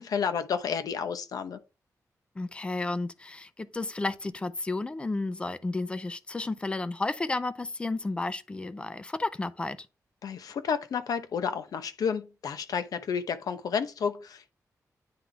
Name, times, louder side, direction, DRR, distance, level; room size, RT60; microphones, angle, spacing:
voice 1, 0.0-1.6 10.2-14.5, left 6 dB, 85° left, 0.8 m, -31 dB
voice 2, 2.4-9.8, left 2 dB, 15° left, 0.5 m, -32 dB
9.6 x 3.7 x 3.4 m
wide cardioid pair, 175°, 6 cm